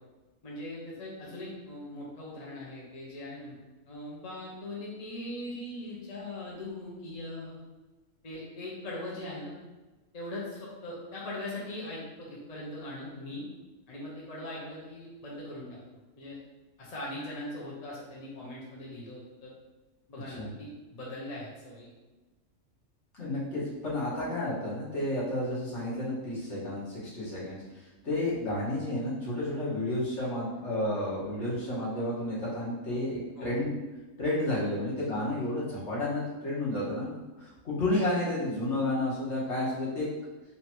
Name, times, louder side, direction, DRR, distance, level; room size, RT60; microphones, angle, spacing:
voice 1, 0.4-3.6 3.9-7.6 8.2-9.5 10.1-13.4 13.9-15.8 16.2-16.4 16.8-19.5 20.1-21.9 33.4-33.6, left 1 dB, 35° left, -5 dB, 0.8 m, -40 dB
voice 2, 23.2-27.6 28.0-33.7 34.2-40.1, left 1 dB, 55° left, -7 dB, 1.5 m, -31 dB
3.4 x 2.8 x 4.4 m, 1.2 s
omnidirectional pair, 1.5 m